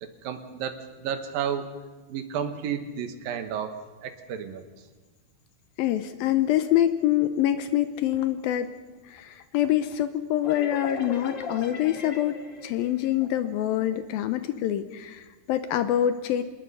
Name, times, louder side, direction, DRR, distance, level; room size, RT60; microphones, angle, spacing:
voice 1, 0.0-1.7 2.1-4.6, right 8 dB, 70° right, 9 dB, 2.9 m, -32 dB
voice 2, 5.8-8.7 9.1-16.4, left 12 dB, 80° left, 11 dB, 2.5 m, -25 dB
sound 1, 10.4-14.0, left 4 dB, 50° left, 1.3 m, -39 dB
26.5 x 19.5 x 5.5 m, 1.3 s
omnidirectional pair, 4.5 m